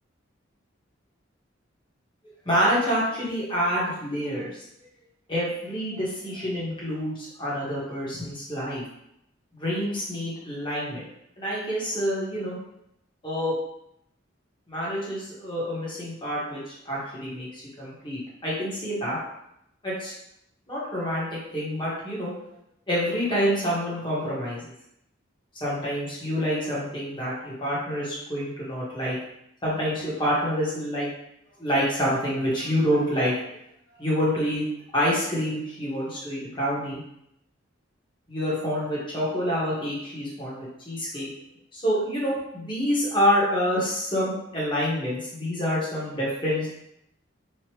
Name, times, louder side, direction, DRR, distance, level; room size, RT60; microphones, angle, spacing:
voice 1, 2.4-4.6 5.3-8.8 9.5-11.0 11.4-12.6 13.2-13.6 14.7-19.2 19.8-20.1 20.7-22.3 22.9-24.6 25.6-29.2 29.6-31.1 31.6-33.3 34.0-34.6 34.9-37.0 38.3-41.3 41.7-46.7, equal, 25° left, -7 dB, 1.2 m, -27 dB
3.2 x 2.4 x 3.0 m, 0.77 s
head